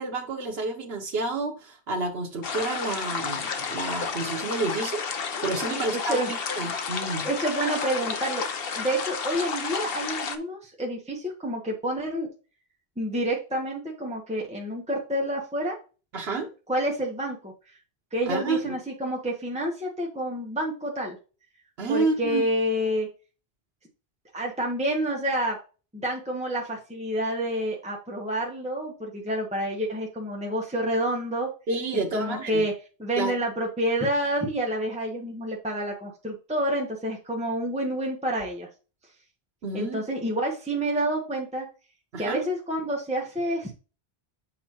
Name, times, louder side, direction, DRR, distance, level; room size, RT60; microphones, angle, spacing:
voice 1, 0.0-7.3 16.1-16.5 18.3-18.7 21.8-22.4 31.7-32.6 33.2-33.3 39.6-40.0 42.1-42.4, right 3 dB, 75° right, 1.2 m, -29 dB
sound 1, 2.4-10.4, left 6 dB, 65° left, 1.0 m, -31 dB
voice 2, 5.7-6.3 7.2-8.4 8.7-12.3 13.0-15.8 16.7-17.5 18.1-21.2 21.9-23.1 24.3-25.6 25.9-31.5 32.1-32.7 33.0-38.7 39.7-41.7 42.2-43.7, right 1 dB, 5° right, 1.2 m, -28 dB
7.6 x 5.3 x 3.0 m
omnidirectional pair, 1.1 m